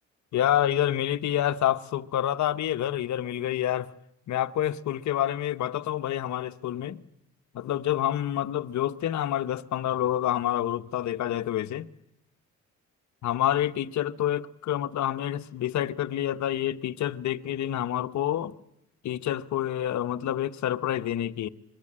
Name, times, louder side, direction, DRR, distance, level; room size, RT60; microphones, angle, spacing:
voice 1, 0.3-3.9 4.3-7.0 7.5-11.9 13.2-18.6 19.0-21.5, left 11 dB, 70° left, 1.1 m, -28 dB
25.0 x 22.0 x 8.8 m
cardioid pair, 90°, 30 cm